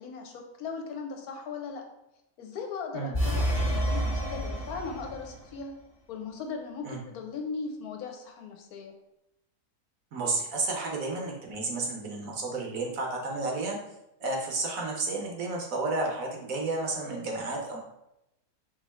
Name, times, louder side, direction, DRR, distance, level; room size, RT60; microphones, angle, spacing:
voice 1, 0.0-1.8 2.4-5.7 6.1-8.9, left 5 dB, 70° left, 3 dB, 1.1 m, -38 dB
sound 1, 3.1-5.4, equal, 25° left, 1.1 m, -29 dB
voice 2, 10.1-13.8 14.2-17.8, right 3 dB, 65° right, 0 dB, 1.2 m, -31 dB
4.5 x 2.7 x 4.1 m, 0.86 s
omnidirectional pair, 1.7 m